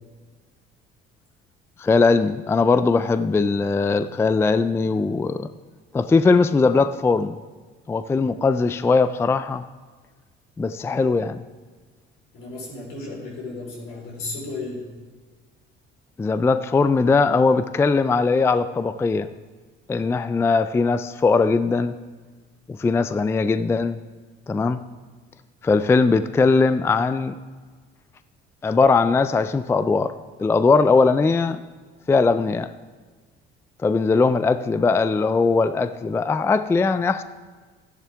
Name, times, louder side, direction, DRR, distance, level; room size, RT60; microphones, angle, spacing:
voice 1, 1.8-5.5 5.9-7.4 7.9-9.6 10.6-11.4 16.2-19.3 19.9-21.9 22.7-24.0 24.5-24.8 25.6-27.3 28.6-30.1 30.4-31.6 32.1-32.7 33.8-37.2, left 4 dB, 10° left, 12 dB, 0.3 m, -20 dB
voice 2, 12.3-14.8, left 3 dB, 80° left, -2 dB, 4.1 m, -34 dB
13.5 x 10.5 x 3.4 m, 1.4 s
cardioid pair, 100°, 21 cm